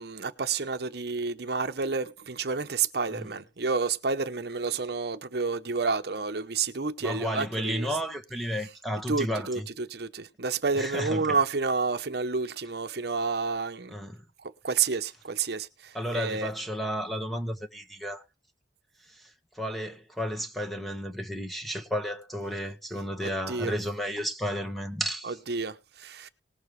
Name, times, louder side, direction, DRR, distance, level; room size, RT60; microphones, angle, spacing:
voice 1, 0.0-7.9 9.1-13.9 14.6-16.5 23.5-23.7 25.3-26.3, right 4 dB, 65° right, 0.9 m, -30 dB
voice 2, 7.0-9.7 10.7-11.4 13.9-14.2 15.9-18.2 19.1-25.4, equal, ahead, 1.4 m, -33 dB
19.5 x 7.1 x 3.3 m
head